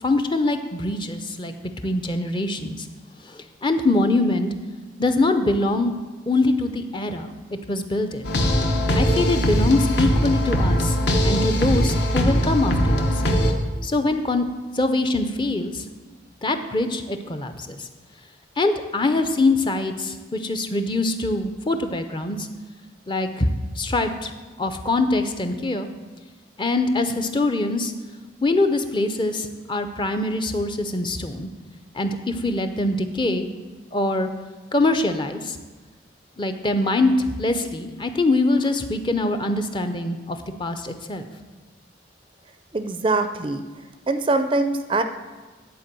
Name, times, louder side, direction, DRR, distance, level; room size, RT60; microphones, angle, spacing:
voice 1, 0.0-1.5 1.8-2.9 3.2-4.5 5.0-5.9 6.3-7.3 7.7-8.3 8.9-11.0 11.2-13.1 13.8-14.5 14.7-15.9 16.4-17.9 18.6-22.5 23.1-23.5 23.8-24.3 24.6-25.9 26.6-27.9 28.4-31.5 31.9-33.5 33.9-34.3 34.7-35.6 36.4-41.3, left 2 dB, 25° left, 7 dB, 0.5 m, -23 dB
sound 1, 8.2-13.5, equal, 65° left, 1.0 m, -21 dB
voice 2, 42.7-43.6 44.1-45.0, right 2 dB, 25° right, 9 dB, 0.4 m, -22 dB
10.5 x 4.5 x 7.5 m, 1.3 s
head